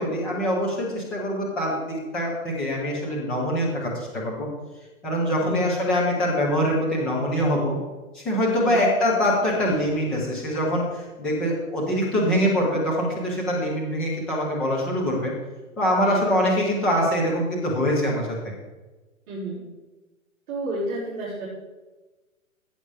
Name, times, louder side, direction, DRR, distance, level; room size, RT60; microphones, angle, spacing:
voice 1, 0.0-4.5 5.0-7.8 8.1-15.3 15.8-18.4, equal, ahead, -5 dB, 0.4 m, -24 dB
voice 2, 5.4-5.8 8.6-8.9 16.0-16.3 19.3-19.6 20.5-21.5, right 1 dB, 35° right, -10 dB, 4.1 m, -31 dB
14.5 x 7.9 x 4.8 m, 1.2 s
hypercardioid pair, 145°, 42 cm